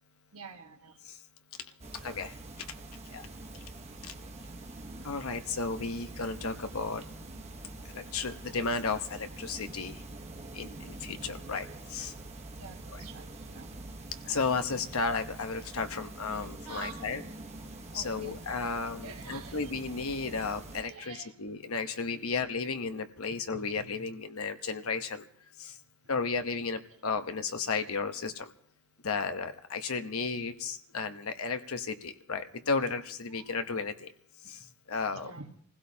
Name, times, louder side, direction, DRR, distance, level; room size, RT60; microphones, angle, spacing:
voice 1, 0.3-1.0 12.5-13.7 16.3-17.1 17.9-18.4 19.0-19.6 20.9-21.3 23.5-24.0 33.4-33.5 35.1-35.5, right 4 dB, 85° right, 3 dB, 1.5 m, -47 dB
sound 1, 1.8-20.8, right 2 dB, 30° right, 1.1 m, -45 dB
voice 2, 2.0-2.3 3.1-3.3 5.0-7.0 7.9-10.0 10.5-12.1 12.9-13.0 14.2-17.2 17.9-25.2 25.6-25.7 26.1-28.5 29.0-34.1 34.5-34.6 34.9-35.3, left 4 dB, 75° left, 8 dB, 1.0 m, -33 dB
26.0 x 16.0 x 2.8 m, 0.63 s
head